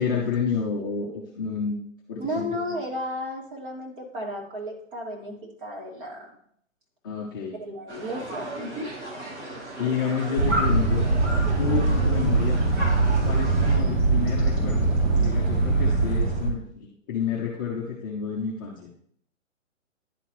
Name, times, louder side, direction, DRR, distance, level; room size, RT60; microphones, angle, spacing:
voice 1, 0.0-1.8 2.1-2.8 7.0-7.6 9.8-11.0 11.6-12.6 13.2-18.9, left 6 dB, 15° left, -4 dB, 0.5 m, -29 dB
voice 2, 2.2-5.3 5.6-6.3 7.6-8.9, equal, 40° right, -1 dB, 2.3 m, -33 dB
sound 1, 7.9-13.8, right 2 dB, 60° right, 2.9 m, -37 dB
sound 2, 10.4-16.5, right 3 dB, 80° right, 2.7 m, -22 dB
10.5 x 4.1 x 3.1 m, 0.65 s
hypercardioid pair, 150°, 39 cm